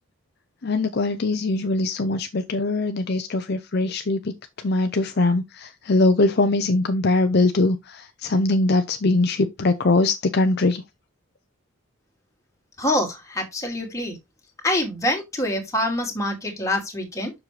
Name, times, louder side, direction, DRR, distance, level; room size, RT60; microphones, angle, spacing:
voice 1, 0.6-4.2 4.6-10.8, left 2 dB, 50° left, 0.6 m, -21 dB
voice 2, 12.8-14.2 14.6-17.3, left 1 dB, 15° left, 2.3 m, -25 dB
7.3 x 6.4 x 3.2 m
head